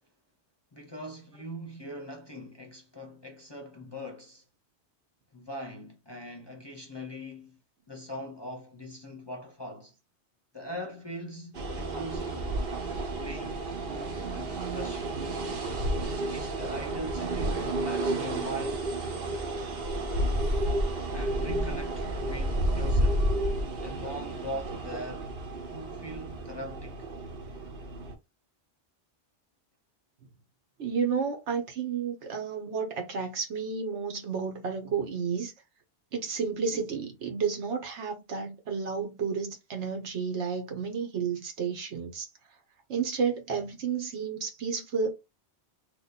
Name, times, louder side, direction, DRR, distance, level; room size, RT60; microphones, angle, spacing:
voice 1, 0.7-4.4 5.3-7.6 7.9-9.9 10.5-12.6 13.2-15.2 16.3-18.9 21.1-23.3 23.8-25.3 25.7-27.1, equal, 30° left, 0.5 m, -41 dB
sound 1, 11.5-28.1, right 1 dB, 60° right, 1.0 m, -31 dB
voice 2, 15.1-15.6 23.7-24.0 30.8-35.5 36.1-42.3 42.9-45.1, right 6 dB, 85° right, 1.3 m, -32 dB
3.0 x 2.6 x 4.0 m
omnidirectional pair, 1.1 m